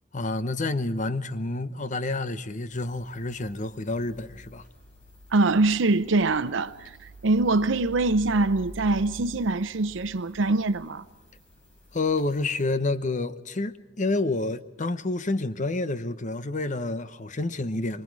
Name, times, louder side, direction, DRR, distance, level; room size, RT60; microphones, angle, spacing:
voice 1, 0.1-4.6 11.9-18.0, left 2 dB, 40° left, 0.9 m, -29 dB
sound 1, 2.7-12.6, equal, 70° left, 7.4 m, -48 dB
voice 2, 5.3-6.9 7.2-11.0, right 3 dB, 90° right, 0.7 m, -23 dB
26.0 x 24.0 x 4.8 m
head